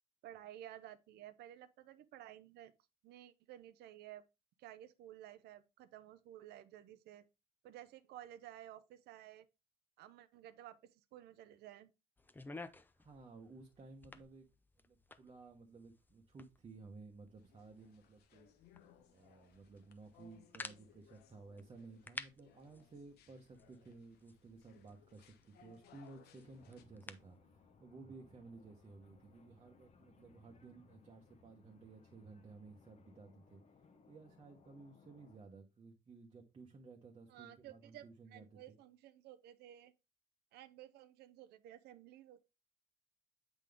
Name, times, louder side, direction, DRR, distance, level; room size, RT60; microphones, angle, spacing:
voice 1, 0.2-2.7 3.0-4.2 4.6-7.3 7.6-9.5 10.0-11.9 37.3-38.1 38.3-39.9 40.5-42.4, right 12 dB, 75° right, 0.6 m, -54 dB
sound 1, 12.2-27.4, left 3 dB, 10° left, 0.4 m, -55 dB
voice 2, 13.0-14.5 14.8-18.5 19.1-33.6 34.1-38.8, right 3 dB, 30° right, 1.0 m, -56 dB
sound 2, 17.4-26.8, left 8 dB, 70° left, 0.9 m, -66 dB
sound 3, 26.4-35.4, left 5 dB, 40° left, 0.9 m, -66 dB
8.1 x 3.8 x 3.5 m
cardioid pair, 110°, 17 cm